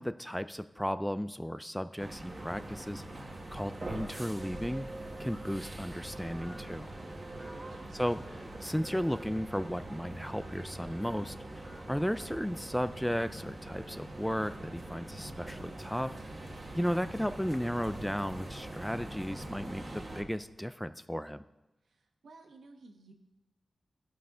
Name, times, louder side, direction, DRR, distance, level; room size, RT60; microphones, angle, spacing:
voice 1, 0.0-4.9 5.2-6.9 7.9-16.1 16.7-21.4, equal, 5° left, 12 dB, 0.3 m, -35 dB
sound 1, 2.0-20.2, right 1 dB, 35° right, 1.6 m, -43 dB
voice 2, 7.5-8.3 21.8-23.1, right 2 dB, 90° right, 3 dB, 1.2 m, -55 dB
16.0 x 5.5 x 3.8 m, 1.0 s
wide cardioid pair, 90°, 0 cm